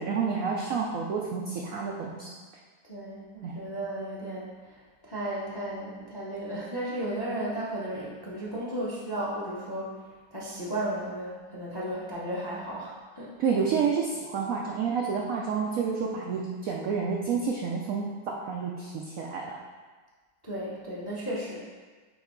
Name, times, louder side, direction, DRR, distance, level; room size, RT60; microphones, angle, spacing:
voice 1, 0.0-2.3 3.4-3.5 13.4-19.6, right 5 dB, 75° right, -1 dB, 0.7 m, -29 dB
voice 2, 2.9-4.5 5.0-10.0 10.3-13.3 20.4-21.6, right 1 dB, 25° left, -5 dB, 0.5 m, -34 dB
8.9 x 3.1 x 3.7 m, 1.4 s
omnidirectional pair, 2.1 m